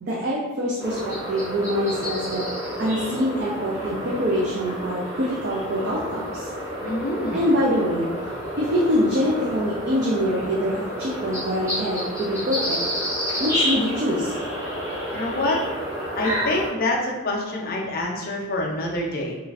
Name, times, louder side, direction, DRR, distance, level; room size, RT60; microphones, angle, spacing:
voice 1, 0.0-2.4 2.8-6.5 7.3-8.1 8.6-12.8 13.4-14.3, equal, 45° right, -4 dB, 0.4 m, -24 dB
sound 1, 0.8-16.7, equal, 15° right, 0.7 m, -30 dB
voice 2, 6.8-7.4 15.1-15.6 16.2-19.4, left 2 dB, 40° left, -1 dB, 0.4 m, -26 dB
3.0 x 2.4 x 2.3 m, 1.1 s
head